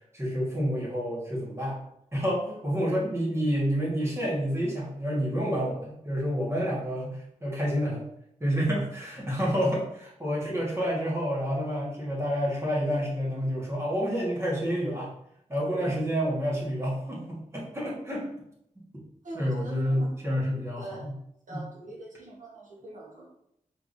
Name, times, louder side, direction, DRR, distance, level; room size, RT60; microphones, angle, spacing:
voice 1, 0.1-1.8 2.1-8.1 8.4-15.1 15.5-18.3 19.3-21.1 21.5-21.6, equal, 20° right, -5 dB, 1.6 m, -29 dB
voice 2, 19.2-20.1 20.4-21.1 21.5-23.3, right 2 dB, 65° right, -4 dB, 1.2 m, -43 dB
5.0 x 3.4 x 2.6 m, 0.76 s
wide cardioid pair, 90°, 14 cm